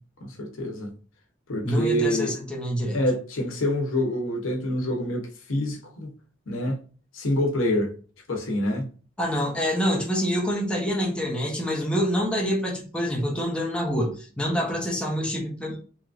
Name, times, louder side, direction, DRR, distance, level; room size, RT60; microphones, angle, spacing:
voice 1, 0.2-0.9 1.5-2.3 2.9-6.1 6.5-6.8 7.1-7.9 8.3-8.9, left 1 dB, 90° left, 0.8 m, -26 dB
voice 2, 1.6-3.0 9.2-15.8, equal, 5° left, 0.6 m, -26 dB
3.0 x 2.4 x 2.3 m
head